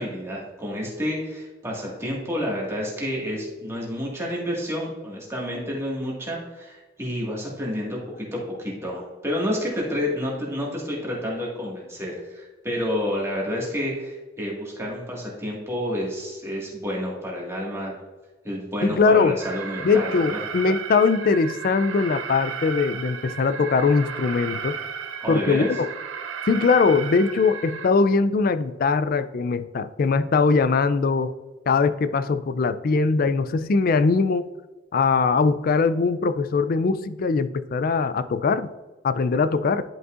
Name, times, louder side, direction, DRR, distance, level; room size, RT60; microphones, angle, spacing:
voice 1, 0.0-17.9 18.4-20.4 25.2-25.7, equal, 15° right, -3 dB, 1.7 m, -29 dB
voice 2, 18.8-19.3 19.8-24.8 25.3-25.9 26.5-31.3 31.7-34.5 34.9-38.7 39.0-39.8, left 4 dB, 45° left, 12 dB, 0.3 m, -21 dB
Alarm, 19.4-27.9, right 6 dB, 80° right, 0.5 m, -34 dB
10.5 x 5.4 x 2.4 m, 1.2 s
head